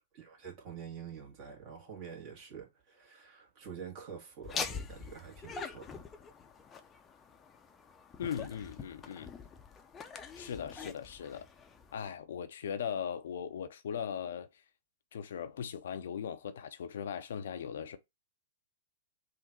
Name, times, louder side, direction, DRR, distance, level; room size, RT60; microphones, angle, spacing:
voice 1, 0.1-6.0, right 7 dB, 45° right, 1.7 m, -47 dB
Laughter, 4.4-12.1, left 5 dB, 20° left, 0.6 m, -44 dB
voice 2, 8.2-9.3 10.4-11.5 11.9-14.5 15.1-18.0, left 8 dB, 65° left, 0.5 m, -39 dB
3.8 x 2.5 x 4.4 m
hypercardioid pair, 110°, 0 cm